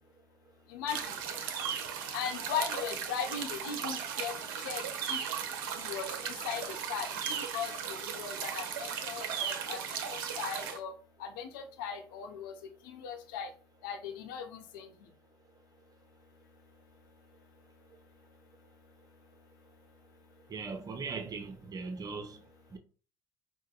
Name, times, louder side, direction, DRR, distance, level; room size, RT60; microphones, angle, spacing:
voice 1, 0.7-1.1 2.1-5.2 5.8-9.8 10.1-10.9 11.2-12.5 12.8-13.5 13.8-14.9, left 7 dB, 70° left, 0.6 m, -38 dB
sound 1, 0.9-10.8, right 7 dB, 70° right, 0.5 m, -37 dB
voice 2, 20.5-22.4 22.7-22.8, right 4 dB, 35° right, 0.7 m, -39 dB
4.5 x 2.1 x 2.3 m
figure-of-eight pair, 55°, 11 cm